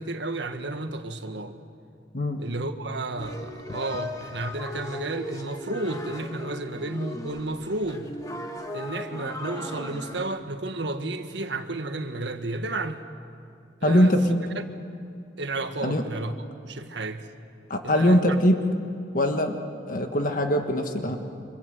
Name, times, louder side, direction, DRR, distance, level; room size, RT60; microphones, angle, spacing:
voice 1, 0.0-1.6 2.4-8.1 8.7-13.0 13.8-14.2 15.4-16.3 16.6-17.3 17.8-18.4, right 2 dB, 70° right, 7 dB, 1.6 m, -32 dB
sound 1, 3.2-10.2, left 1 dB, 20° left, 1.9 m, -37 dB
voice 2, 13.8-14.4 15.8-16.0 17.7-18.6 19.1-19.5 19.9-21.2, equal, 45° left, 5 dB, 1.5 m, -22 dB
29.0 x 26.0 x 7.8 m, 2.4 s
head